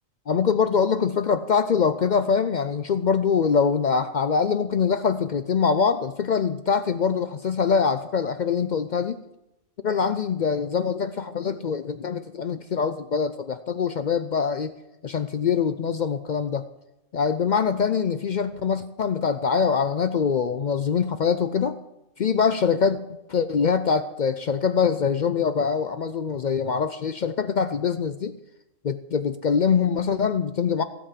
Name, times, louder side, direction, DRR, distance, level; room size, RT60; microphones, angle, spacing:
voice 1, 0.3-9.2 9.8-14.7 15.0-16.6 17.1-21.8 22.2-23.0 23.3-28.3 28.8-30.8, left 6 dB, 65° left, 11 dB, 0.4 m, -23 dB
16.5 x 5.6 x 8.3 m, 0.91 s
omnidirectional pair, 1.4 m